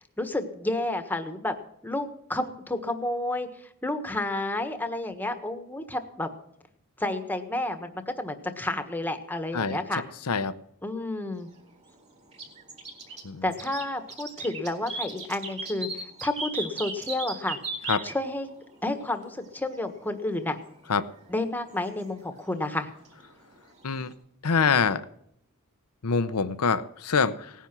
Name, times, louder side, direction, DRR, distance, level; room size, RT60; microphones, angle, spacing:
voice 1, 0.2-1.5 1.8-3.5 3.8-6.3 7.0-10.0 10.8-11.5 13.4-17.6 18.0-18.5 18.8-20.6 21.3-22.9, left 2 dB, 10° left, 7 dB, 1.4 m, -30 dB
sound 1, 11.4-24.1, right 3 dB, 30° right, 4.0 m, -38 dB
voice 2, 24.4-25.0 26.0-27.5, left 5 dB, 85° left, 13 dB, 0.8 m, -25 dB
18.0 x 10.0 x 6.1 m, 0.73 s
head